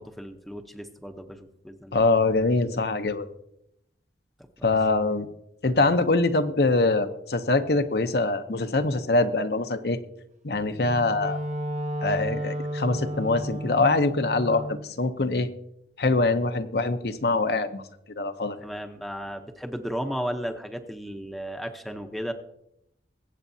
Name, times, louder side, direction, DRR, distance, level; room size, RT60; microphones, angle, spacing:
voice 1, 0.0-2.0 4.6-4.7 14.5-14.7 18.6-22.3, equal, ahead, 4 dB, 0.7 m, -34 dB
voice 2, 1.9-3.3 4.6-5.3 5.6-10.0 10.4-11.4 12.0-15.5 16.0-17.8 18.2-18.6, left 3 dB, 65° left, 8 dB, 0.7 m, -24 dB
Wind instrument woodwind instrument, 10.7-14.9, equal, 40° right, 0.7 m, -32 dB
22.5 x 8.1 x 2.7 m, 0.79 s
head